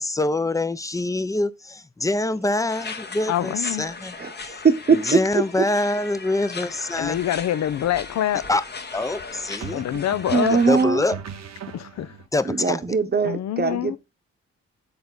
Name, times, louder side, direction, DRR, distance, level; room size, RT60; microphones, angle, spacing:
voice 1, 0.0-4.1 4.4-4.6 4.9-7.2 8.5-8.6 8.9-9.8 10.5-11.2 12.3-12.8, left 2 dB, 10° left, 0.6 m, -25 dB
sound 1, 2.7-10.8, left 4 dB, 35° left, 1.0 m, -37 dB
voice 2, 3.3-3.9 7.0-8.5 9.7-10.6 11.7-12.2 13.2-14.0, left 11 dB, 65° left, 0.6 m, -25 dB
voice 3, 4.6-5.4 10.3-11.0 12.4-14.0, right 5 dB, 35° right, 1.0 m, -21 dB
sound 2, 6.9-7.2 9.6-12.3, right 7 dB, 60° right, 1.0 m, -39 dB
6.8 x 4.0 x 3.8 m
supercardioid pair, 45°, 29 cm